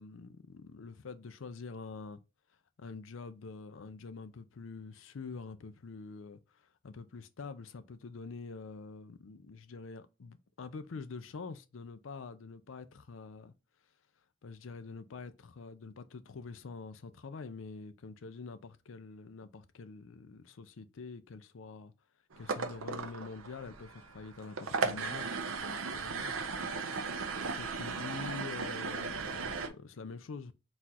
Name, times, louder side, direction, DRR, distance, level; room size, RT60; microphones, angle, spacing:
voice 1, 0.0-2.2 2.8-13.5 14.4-21.9 22.4-25.3 25.6-26.4 26.7-30.5, left 4 dB, 70° left, 0.5 m, -46 dB
sound 1, 22.3-29.7, right 4 dB, 90° right, 0.7 m, -37 dB
4.1 x 2.5 x 4.1 m
head